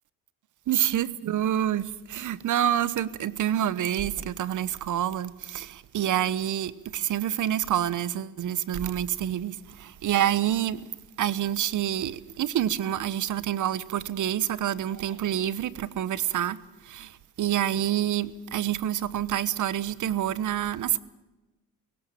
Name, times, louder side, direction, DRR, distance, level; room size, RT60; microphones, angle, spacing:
voice 1, 0.7-10.9 11.2-21.0, right 11 dB, 50° right, 1.1 m, -27 dB
17.5 x 17.0 x 8.8 m
supercardioid pair, 75°, 39 cm